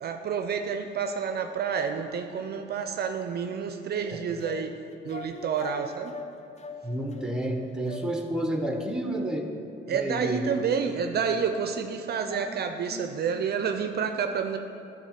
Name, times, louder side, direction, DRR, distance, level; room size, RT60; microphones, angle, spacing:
voice 1, 0.0-4.7 5.0-6.1 9.9-14.6, right 6 dB, 55° right, 6 dB, 0.5 m, -29 dB
sound 1, 3.9-8.5, left 5 dB, 35° left, 0.4 m, -43 dB
voice 2, 6.8-9.5 9.9-10.5 12.3-12.5 12.9-13.1, right 1 dB, 5° right, 3 dB, 0.8 m, -30 dB
10.0 x 3.8 x 5.7 m, 2.7 s
cardioid pair, 90°, 20 cm